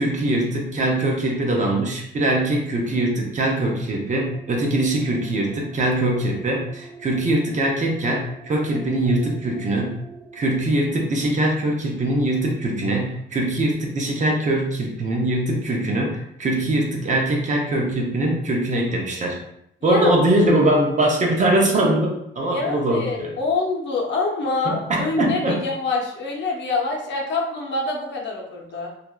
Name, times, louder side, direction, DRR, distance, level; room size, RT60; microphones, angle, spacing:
voice 1, 0.0-10.0 10.3-19.4 19.8-23.3 24.7-25.6, right 1 dB, 40° right, 0 dB, 0.7 m, -22 dB
sound 1, 4.3-10.6, right 3 dB, 10° right, 0.3 m, -45 dB
voice 2, 19.8-20.1 22.5-28.9, left 3 dB, 65° left, -1 dB, 0.7 m, -26 dB
2.7 x 2.4 x 2.3 m, 0.75 s
cardioid pair, 90°, 20 cm